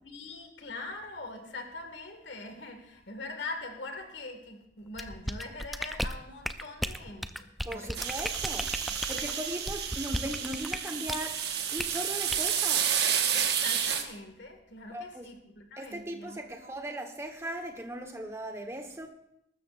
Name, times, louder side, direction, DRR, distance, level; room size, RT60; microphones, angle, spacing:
voice 1, 0.0-7.9 9.1-9.3 13.3-16.8, left 2 dB, 75° left, 4 dB, 2.0 m, -43 dB
sound 1, 5.0-11.3 11.8-12.0 12.3-12.5, equal, ahead, 0.4 m, -35 dB
voice 2, 7.6-8.8 9.1-11.4 11.7-12.9 14.9-15.3 15.8-19.1, right 1 dB, 15° right, 4 dB, 1.3 m, -38 dB
sound 2, 7.9-14.0, right 8 dB, 65° right, 1.3 m, -30 dB
21.5 x 12.5 x 2.5 m, 0.76 s
head